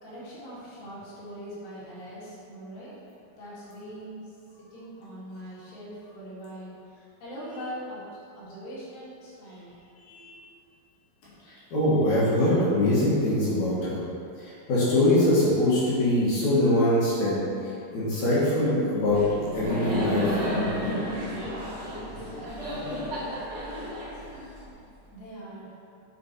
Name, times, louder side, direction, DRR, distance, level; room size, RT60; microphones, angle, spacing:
voice 1, 0.0-3.0 3.4-4.2 4.7-8.0 8.4-9.7 25.1-25.7, equal, 75° left, -9 dB, 4.1 m, -41 dB
voice 2, 11.5-14.0 14.4-19.2 19.5-21.0, left 1 dB, 55° left, -9 dB, 2.5 m, -23 dB
Laughter, 19.1-24.9, equal, 65° right, 0.7 m, -32 dB
8.5 x 5.2 x 4.5 m, 2.6 s
omnidirectional pair, 5.0 m